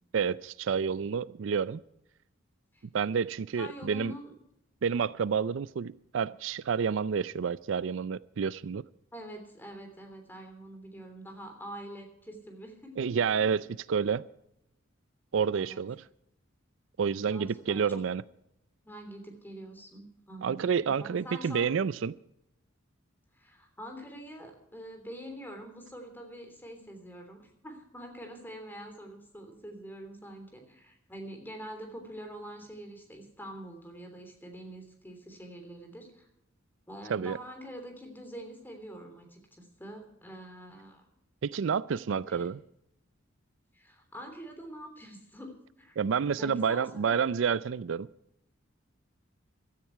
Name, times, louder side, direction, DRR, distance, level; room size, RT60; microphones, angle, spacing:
voice 1, 0.1-1.8 2.9-4.1 4.8-8.8 13.0-14.2 15.3-16.0 17.0-18.2 20.4-22.1 37.1-37.4 41.4-42.6 46.0-48.1, right 6 dB, 70° right, 0.4 m, -29 dB
voice 2, 3.6-4.3 9.1-13.0 15.5-15.8 17.3-18.0 18.8-21.8 23.3-36.3 36.9-41.1 42.3-42.5 43.7-46.1 46.4-47.2, equal, 10° left, 3.2 m, -45 dB
16.0 x 13.0 x 4.6 m
head